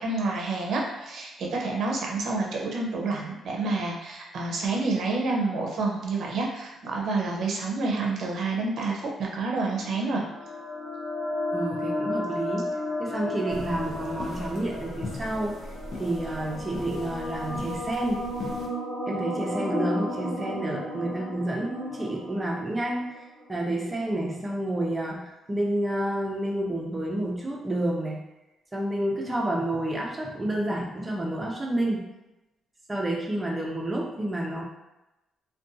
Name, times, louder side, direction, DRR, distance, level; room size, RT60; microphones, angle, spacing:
voice 1, 0.0-10.2, right 3 dB, 65° right, -1 dB, 0.6 m, -28 dB
sound 1, 9.8-23.7, left 1 dB, 35° left, 1.1 m, -34 dB
voice 2, 11.5-12.7 13.0-15.6 16.0-18.3 19.1-23.2 23.5-28.2 28.7-32.1 32.9-34.6, right 1 dB, 20° right, -1 dB, 0.6 m, -29 dB
sound 2, 13.5-18.7, left 1 dB, 60° left, 0.6 m, -39 dB
2.5 x 2.2 x 2.6 m, 0.99 s
cardioid pair, 90°, 0 cm